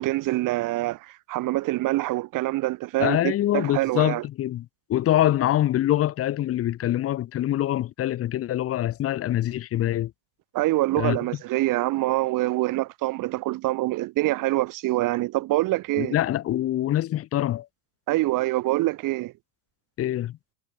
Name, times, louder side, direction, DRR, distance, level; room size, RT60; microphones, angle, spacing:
voice 1, 0.0-4.2 10.5-16.2 18.1-19.3, right 18 dB, 40° right, 3.1 m, -25 dB
voice 2, 3.0-10.1 11.0-11.2 16.0-17.7 20.0-20.4, left 13 dB, 30° left, 1.8 m, -24 dB
cardioid pair, 180°, 50 cm